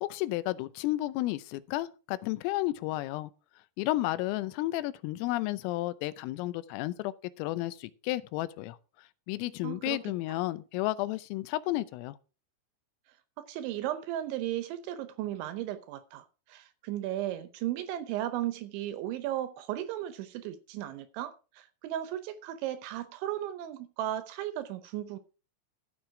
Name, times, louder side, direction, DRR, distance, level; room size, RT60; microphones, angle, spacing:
voice 1, 0.0-3.3 3.8-8.8 9.3-12.1, left 17 dB, 90° left, 3.4 m, -32 dB
voice 2, 9.6-10.0 13.4-25.2, right 12 dB, 80° right, 2.9 m, -35 dB
13.0 x 7.1 x 4.8 m
omnidirectional pair, 5.8 m